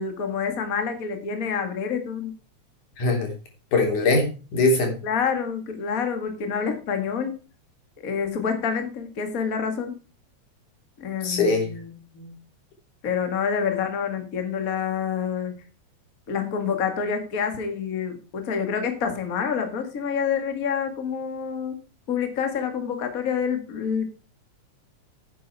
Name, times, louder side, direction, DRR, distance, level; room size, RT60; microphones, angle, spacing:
voice 1, 0.0-2.3 5.0-7.3 8.0-9.9 11.0-12.3 13.0-15.6 16.3-21.8 22.1-24.1, left 6 dB, 30° left, 7 dB, 1.9 m, -27 dB
voice 2, 3.0-3.3 3.7-4.9 11.2-11.7, left 3 dB, 80° left, 2 dB, 4.9 m, -21 dB
11.0 x 8.7 x 4.7 m, 0.33 s
omnidirectional pair, 3.5 m